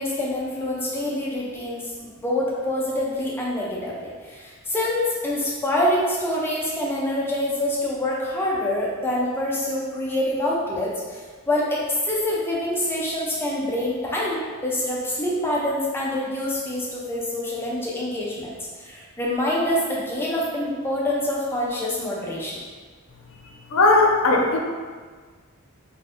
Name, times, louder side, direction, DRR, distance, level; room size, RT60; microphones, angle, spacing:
voice 1, 0.0-1.9 2.2-11.8 12.1-18.5 18.8-22.6, left 1 dB, 10° left, -5 dB, 0.5 m, -26 dB
voice 2, 23.7-24.6, left 2 dB, 65° left, 0 dB, 0.5 m, -17 dB
2.6 x 2.5 x 3.4 m, 1.5 s
head